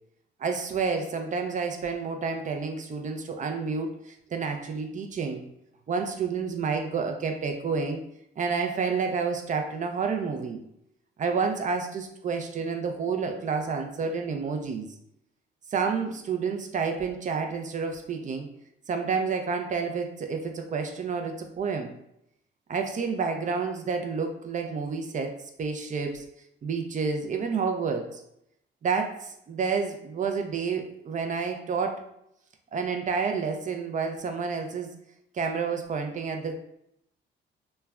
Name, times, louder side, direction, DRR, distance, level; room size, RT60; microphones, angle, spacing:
voice 1, 0.4-5.4 5.9-8.0 8.4-10.6 11.2-14.9 15.7-18.5 18.9-21.9 22.7-26.2 26.6-28.2 28.8-32.0 32.7-34.9 35.3-36.6, right 5 dB, 40° right, 5 dB, 0.4 m, -29 dB
3.0 x 2.2 x 2.3 m, 0.77 s
cardioid pair, 90°, 20 cm